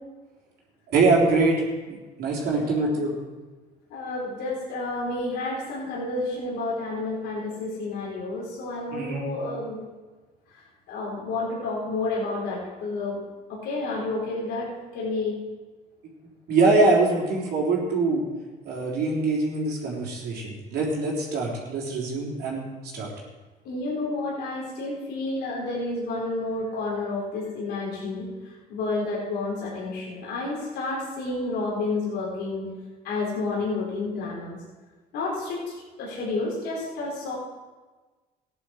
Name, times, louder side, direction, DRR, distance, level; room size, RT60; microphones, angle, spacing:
voice 1, 0.9-1.6 1.9-3.1 8.9-9.2 16.5-18.2 18.6-22.7 22.9-23.1, right 3 dB, 75° right, -4 dB, 3.8 m, -23 dB
voice 2, 2.5-2.9 3.9-9.8 10.9-13.2 13.5-15.4 23.6-32.7 33.0-34.6 35.1-35.6 36.0-37.4, left 2 dB, 85° left, -5 dB, 4.1 m, -30 dB
15.0 x 10.0 x 4.9 m, 1.3 s
cardioid pair, 110°, 17 cm